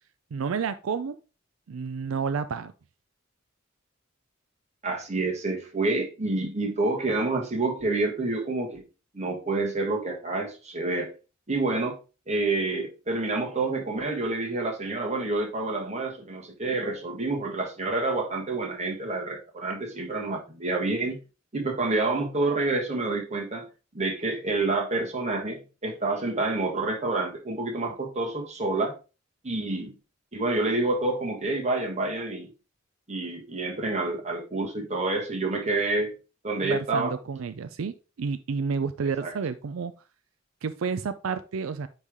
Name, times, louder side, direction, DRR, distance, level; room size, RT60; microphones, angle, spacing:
voice 1, 0.3-1.2 1.7-2.7 36.6-39.9 40.6-41.9, right 5 dB, 85° right, 0.4 m, -30 dB
voice 2, 4.8-8.8 9.1-11.1 11.5-12.0 12.3-21.2 21.5-23.7 23.9-28.9 29.4-29.9 30.3-32.5 33.1-36.1 36.4-37.1 39.2-39.3, right 2 dB, 35° right, 1.5 m, -28 dB
9.7 x 3.3 x 3.5 m
head